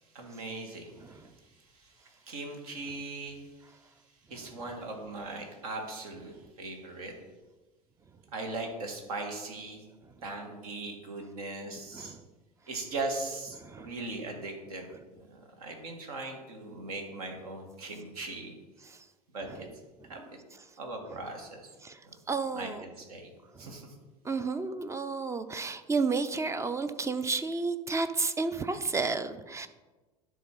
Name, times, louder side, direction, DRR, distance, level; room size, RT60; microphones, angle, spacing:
voice 1, 0.1-0.9 1.8-1.9 2.2-3.4 4.3-7.1 8.3-9.8 10.2-12.2 12.7-14.9 15.3-18.5 19.3-19.7 20.1-20.4 20.8-21.7 22.5-23.3 23.6-23.9, right 2 dB, 65° right, 3 dB, 1.7 m, -39 dB
voice 2, 13.6-13.9 18.8-19.0 19.5-19.6 21.8-22.0 22.3-22.9 23.5-23.8 24.2-29.7, right 4 dB, 15° right, 11 dB, 0.5 m, -32 dB
10.0 x 3.7 x 5.7 m, 1.2 s
figure-of-eight pair, 75°, 20 cm